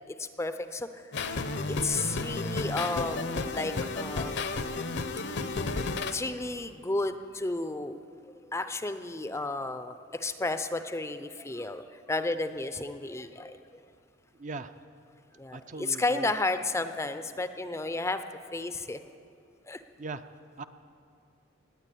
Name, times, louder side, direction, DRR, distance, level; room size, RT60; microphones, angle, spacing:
voice 1, 0.1-1.1 1.7-4.7 6.1-8.0 8.5-13.6 15.3-18.2 18.5-19.0 19.7-19.8, left 2 dB, 15° left, 10 dB, 0.5 m, -32 dB
sound 1, 1.1-6.1, left 3 dB, 55° left, 0.7 m, -32 dB
voice 2, 14.4-14.7 15.5-16.3 20.0-20.2 20.6-20.7, right 3 dB, 35° right, 10 dB, 0.5 m, -39 dB
19.0 x 9.2 x 8.4 m, 2.5 s
head